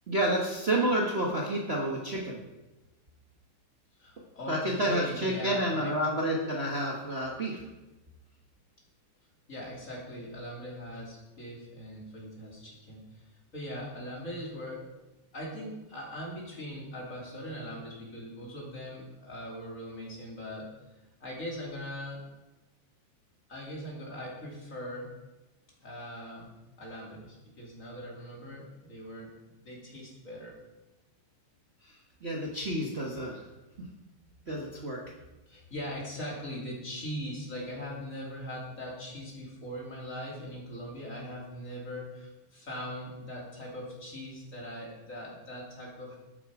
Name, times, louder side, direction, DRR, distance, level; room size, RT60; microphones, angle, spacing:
voice 1, 0.1-2.4 4.5-7.6 31.8-31.9 32.2-33.4 33.8-33.9 34.5-35.0, right 1 dB, 60° right, -2 dB, 0.6 m, -29 dB
voice 2, 4.0-6.0 9.5-14.9 15.3-20.7 21.2-22.2 23.5-25.1 25.8-26.5 26.8-30.6 34.1-46.2, equal, 25° left, -3 dB, 3.0 m, -41 dB
12.5 x 8.5 x 4.8 m, 1.0 s
omnidirectional pair, 3.4 m